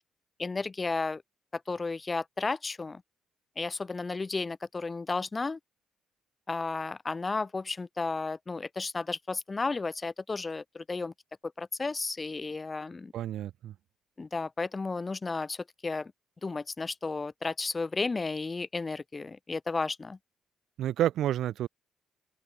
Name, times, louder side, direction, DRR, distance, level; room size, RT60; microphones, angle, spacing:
voice 1, 0.4-1.2 1.5-3.0 3.6-5.6 6.5-11.1 11.4-13.1 14.2-16.1 16.4-20.2, left 3 dB, 25° left, 1.4 m, -33 dB
voice 2, 13.1-13.7 20.8-21.7, right 12 dB, 75° right, 0.4 m, -29 dB
cardioid pair, 95°, 0 cm